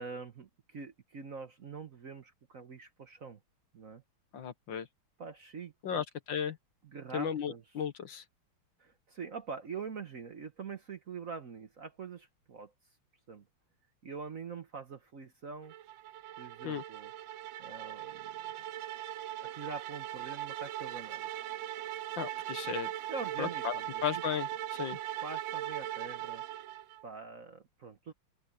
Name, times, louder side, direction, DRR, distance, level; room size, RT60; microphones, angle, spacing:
voice 1, 0.0-3.4 3.7-4.0 5.2-6.0 6.8-7.6 8.8-12.7 13.3-13.5 14.0-15.7 16.4-17.1 17.6-18.5 19.4-21.3 23.1-24.0 24.9-26.4 27.0-28.1, right 5 dB, 45° right, 1.3 m, -44 dB
voice 2, 4.3-4.9 5.8-6.6 7.1-8.2 16.6-16.8 22.2-22.9 23.4-25.0, left 8 dB, 65° left, 1.9 m, -35 dB
sound 1, 15.7-27.0, right 13 dB, 75° right, 1.3 m, -40 dB
open air
omnidirectional pair, 2.4 m